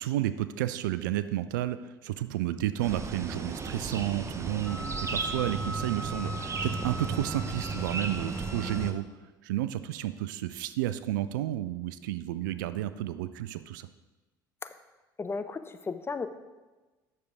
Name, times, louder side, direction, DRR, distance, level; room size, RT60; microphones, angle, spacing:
voice 1, 0.0-4.8 5.1-9.0 9.4-13.9, right 13 dB, 75° right, 13 dB, 0.4 m, -31 dB
sound 1, 2.8-8.9, right 3 dB, 25° right, 0.8 m, -35 dB
Wind instrument woodwind instrument, 4.6-8.9, right 1 dB, 5° left, 1.0 m, -41 dB
voice 2, 15.2-16.3, left 4 dB, 25° left, 10 dB, 0.6 m, -34 dB
9.4 x 6.6 x 3.5 m, 1.2 s
hypercardioid pair, 65°, 11 cm